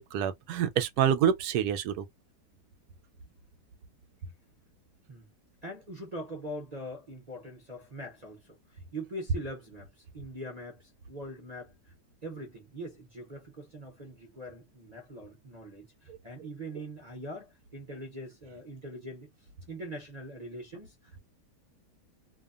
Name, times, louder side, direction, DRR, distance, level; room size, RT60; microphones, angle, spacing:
voice 1, 0.0-2.0, right 9 dB, 75° right, 1.1 m, -27 dB
voice 2, 5.6-11.9 12.2-19.3 19.7-21.2, right 1 dB, 40° right, 0.6 m, -42 dB
2.7 x 2.2 x 2.4 m
omnidirectional pair, 1.8 m